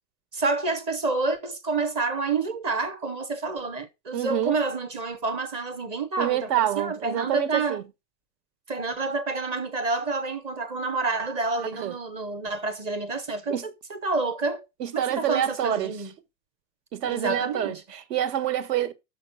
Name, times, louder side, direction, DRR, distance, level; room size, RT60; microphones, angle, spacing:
voice 1, 0.3-7.8 8.7-14.7 14.9-16.1 17.0-17.8, right 3 dB, 15° right, 0.5 m, -28 dB
voice 2, 4.1-4.5 6.2-7.8 11.7-11.9 13.5-13.6 14.8-16.1 16.9-18.9, right 11 dB, 70° right, 1.4 m, -27 dB
6.7 x 6.0 x 6.4 m
supercardioid pair, 155°, 50 cm